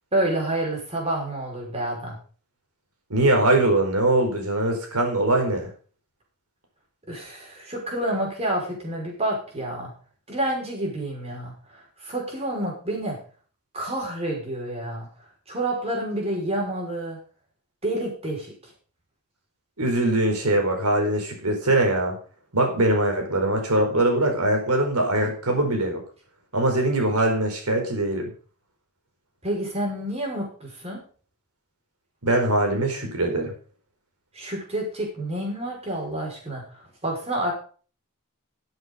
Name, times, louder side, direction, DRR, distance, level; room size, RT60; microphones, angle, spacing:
voice 1, 0.1-2.2 7.1-9.9 10.3-13.2 13.7-15.1 15.5-17.2 17.8-18.5 29.4-31.0 34.3-37.5, right 1 dB, 30° right, 0 dB, 5.7 m, -29 dB
voice 2, 3.1-5.7 19.8-22.2 22.5-26.0 26.5-28.3 32.2-33.5, right 1 dB, 80° right, 3 dB, 4.7 m, -22 dB
13.5 x 8.1 x 5.5 m, 0.41 s
head